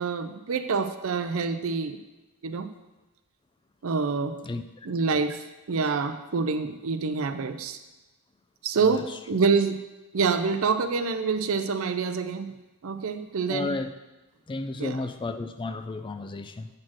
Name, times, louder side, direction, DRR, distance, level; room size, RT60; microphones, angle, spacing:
voice 1, 0.0-2.0 2.4-2.7 3.8-4.4 4.9-7.8 8.6-9.8 10.1-12.5 12.8-13.7 14.8-15.0, right 4 dB, 70° right, 10 dB, 0.5 m, -26 dB
voice 2, 13.5-13.9 14.5-16.7, left 3 dB, 20° left, 9 dB, 0.3 m, -33 dB
7.3 x 4.3 x 6.2 m, 1.1 s
head